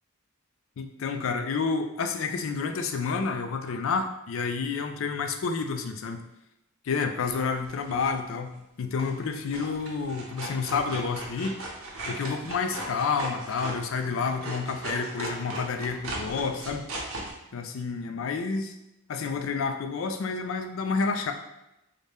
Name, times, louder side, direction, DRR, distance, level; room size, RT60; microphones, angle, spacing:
voice 1, 0.8-6.2 6.8-11.6 12.1-16.9 17.5-18.8 19.1-21.3, left 5 dB, 65° left, 6 dB, 0.4 m, -29 dB
sound 1, 7.2-8.1 9.0-9.3 9.5-17.3, right 1 dB, 80° right, 0.8 m, -38 dB
3.9 x 2.1 x 3.3 m, 0.90 s
head